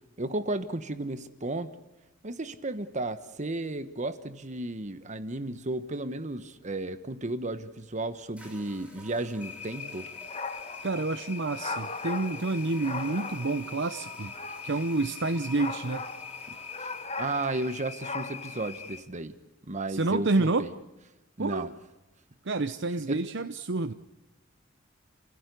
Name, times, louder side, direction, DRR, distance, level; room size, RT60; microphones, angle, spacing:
voice 1, 0.2-1.7 2.2-10.1 16.8-16.9 17.2-19.3 19.7-20.7 21.4-21.7 23.1-23.3, right 2 dB, 40° right, 11 dB, 1.2 m, -33 dB
sound 1, 8.4-17.1, right 1 dB, 5° right, 6.4 m, -52 dB
sound 2, 9.4-19.0, left 4 dB, 35° left, 1.6 m, -38 dB
voice 2, 10.8-14.3 14.6-16.0 19.9-20.7 21.4-21.7 22.4-23.9, right 3 dB, 65° right, 10 dB, 0.9 m, -28 dB
30.0 x 16.5 x 8.4 m, 1.0 s
head